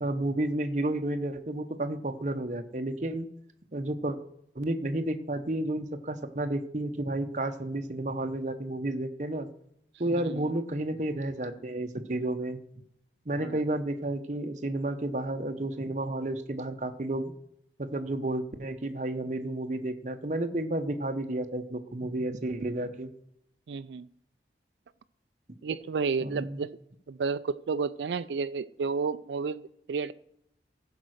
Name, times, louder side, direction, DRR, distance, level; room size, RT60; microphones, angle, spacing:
voice 1, 0.0-3.3 3.7-4.2 4.5-9.5 10.0-12.6 13.3-17.3 17.8-23.1 26.2-26.6, right 1 dB, 45° right, 0.8 m, -31 dB
voice 2, 10.2-10.5 13.4-13.6 23.7-24.1 25.6-26.7 27.1-30.1, right 5 dB, 80° right, 0.4 m, -31 dB
15.0 x 5.4 x 6.4 m
head